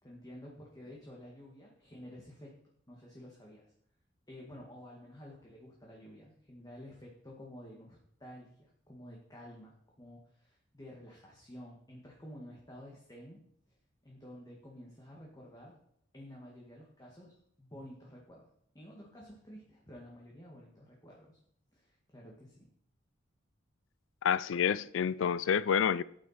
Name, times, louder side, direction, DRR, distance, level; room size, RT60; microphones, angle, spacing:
voice 1, 0.0-2.5 2.9-3.7 4.3-13.4 14.0-15.7 16.1-18.5 18.7-21.4 21.7-22.7, equal, 20° left, 1.8 m, -51 dB
voice 2, 24.2-26.0, left 7 dB, 80° left, 0.4 m, -28 dB
13.5 x 8.8 x 4.3 m
head